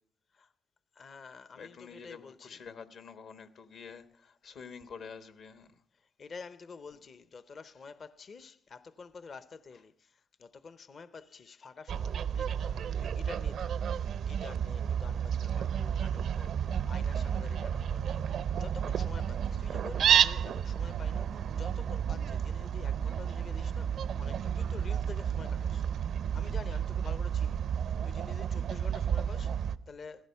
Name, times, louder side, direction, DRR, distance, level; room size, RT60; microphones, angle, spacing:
voice 1, 0.9-2.6 5.9-18.2 18.5-25.8 26.3-30.3, left 4 dB, 50° left, 0.7 m, -49 dB
voice 2, 1.6-5.7, left 6 dB, 65° left, 1.3 m, -48 dB
Fowl, 11.9-29.8, right 8 dB, 65° right, 0.5 m, -31 dB
16.0 x 15.0 x 5.6 m
cardioid pair, 90°, 0 cm